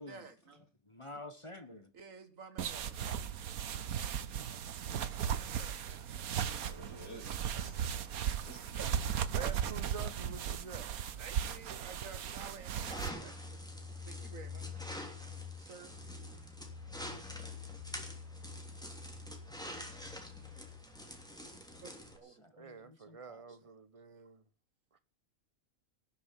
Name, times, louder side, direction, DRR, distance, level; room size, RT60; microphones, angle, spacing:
voice 1, 0.0-0.7 1.9-3.3 5.2-6.9 11.2-13.6 14.1-14.9 15.6-15.9 21.8-22.4, right 5 dB, 65° right, 2.0 m, -53 dB
voice 2, 0.8-1.9 22.6-23.4, left 2 dB, 25° left, 1.3 m, -49 dB
sound 1, 2.6-13.1, right 8 dB, 90° right, 1.4 m, -37 dB
voice 3, 6.5-7.9 8.5-9.4, equal, 80° left, 3.7 m, -52 dB
voice 4, 9.3-11.2 22.6-24.4 24.9-25.0, right 5 dB, 25° right, 1.1 m, -48 dB
sound 2, 12.8-22.2, left 2 dB, 5° left, 3.1 m, -45 dB
18.5 x 7.1 x 7.5 m
omnidirectional pair, 1.5 m